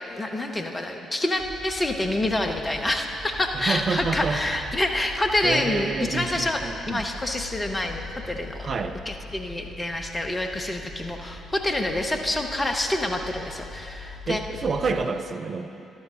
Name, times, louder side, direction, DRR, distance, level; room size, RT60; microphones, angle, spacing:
voice 1, 0.1-8.7 9.1-14.4, left 1 dB, 20° left, 4 dB, 1.1 m, -27 dB
sound 1, 1.3-15.0, left 2 dB, 75° left, 2.9 m, -41 dB
voice 2, 3.5-4.6 5.4-7.0 8.6-9.0 14.3-15.9, right 4 dB, 40° right, 6 dB, 0.6 m, -28 dB
13.5 x 12.0 x 3.9 m, 2.7 s
figure-of-eight pair, 40°, 0 cm